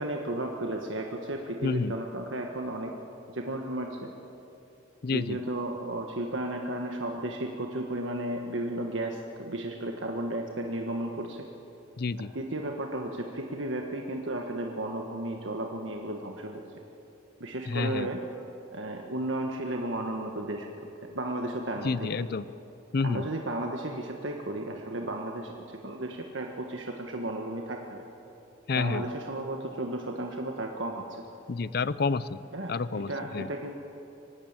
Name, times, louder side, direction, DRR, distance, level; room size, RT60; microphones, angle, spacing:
voice 1, 0.0-2.9 3.3-4.1 5.1-11.5 12.3-16.6 17.4-18.2 18.7-20.7 21.1-22.3 23.0-28.0 28.7-31.2 32.5-33.7, right 1 dB, 75° right, 2 dB, 1.4 m, -34 dB
voice 2, 1.6-1.9 5.0-5.4 12.0-12.3 17.7-18.1 21.8-22.4 22.9-23.3 28.7-29.0 31.5-32.4 32.7-33.5, left 4 dB, 50° left, 17 dB, 0.5 m, -29 dB
24.5 x 12.5 x 8.8 m, 2.8 s
head